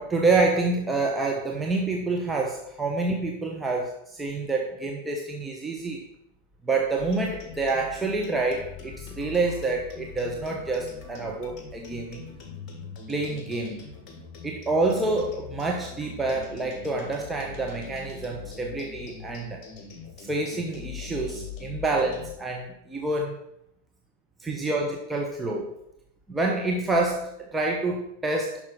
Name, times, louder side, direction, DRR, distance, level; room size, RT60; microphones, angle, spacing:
voice 1, 0.0-6.0 6.6-12.3 13.1-13.9 14.4-19.6 20.2-23.4 24.4-25.7 26.3-28.6, right 3 dB, 10° right, -1 dB, 1.0 m, -27 dB
sound 1, 7.0-22.3, left 6 dB, 35° left, 1.8 m, -42 dB
10.5 x 5.9 x 4.3 m, 0.80 s
figure-of-eight pair, 90°, 0 cm